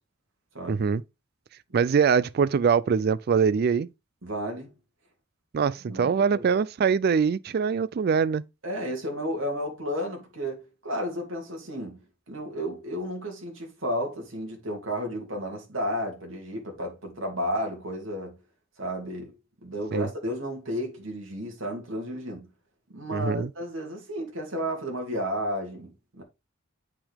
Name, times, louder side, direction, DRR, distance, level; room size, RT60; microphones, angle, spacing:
voice 1, 0.7-1.0 1.7-3.9 5.5-8.4 19.9-20.1 23.1-23.5, right 6 dB, 50° right, 0.4 m, -23 dB
voice 2, 4.2-4.7 5.9-6.4 8.6-18.4 18.8-19.3 19.6-22.5 22.9-26.2, equal, 70° right, 2.8 m, -32 dB
8.4 x 5.9 x 3.6 m
head